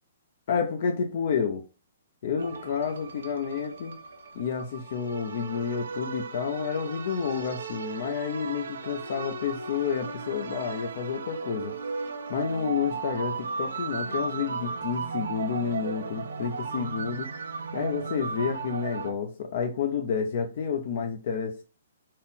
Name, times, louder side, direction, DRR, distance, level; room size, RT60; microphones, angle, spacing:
voice 1, 0.5-1.6 2.2-4.0 4.3-11.7 12.3-17.3 17.7-21.6, left 6 dB, 40° left, 0.4 m, -30 dB
sound 1, 2.4-19.1, right 4 dB, 85° right, 0.7 m, -36 dB
4.1 x 2.0 x 3.7 m
hypercardioid pair, 175°, 0 cm